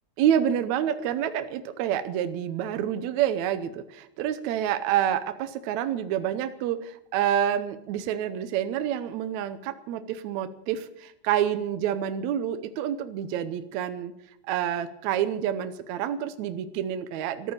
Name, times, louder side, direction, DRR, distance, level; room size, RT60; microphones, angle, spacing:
voice 1, 0.2-14.1 14.4-17.5, right 10 dB, 75° right, 11 dB, 1.8 m, -28 dB
14.0 x 13.5 x 7.2 m, 0.80 s
omnidirectional pair, 4.0 m